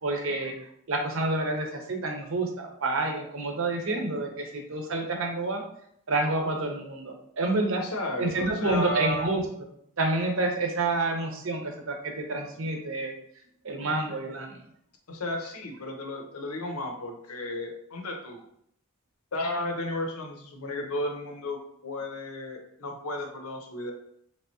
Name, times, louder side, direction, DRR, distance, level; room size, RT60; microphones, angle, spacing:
voice 1, 0.0-0.5 0.9-5.6 6.1-7.8 8.2-9.4 10.0-13.1 13.6-14.6, right 2 dB, 65° right, 3 dB, 0.7 m, -28 dB
voice 2, 7.8-9.3 15.1-18.4 19.3-23.9, left 1 dB, 85° left, 3 dB, 0.7 m, -33 dB
3.4 x 3.0 x 2.8 m, 0.70 s
head